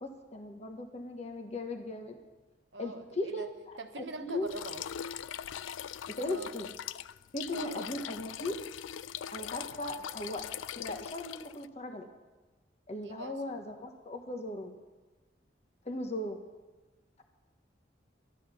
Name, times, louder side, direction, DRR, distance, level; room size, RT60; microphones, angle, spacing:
voice 1, 0.0-2.2 2.8-3.5 4.0-4.5 6.2-6.7 7.3-8.5 9.3-10.4 10.8-12.1 12.9-14.7 15.8-16.4, left 1 dB, 35° left, 4 dB, 1.2 m, -38 dB
voice 2, 2.7-3.5 3.8-4.8 6.2-6.5 7.5-7.9 9.8-10.0 13.0-13.6, right 2 dB, 70° right, 7 dB, 1.1 m, -43 dB
Pouring water (long version), 4.5-11.7, left 10 dB, 90° left, 0.3 m, -41 dB
12.5 x 11.5 x 6.8 m, 1.2 s
head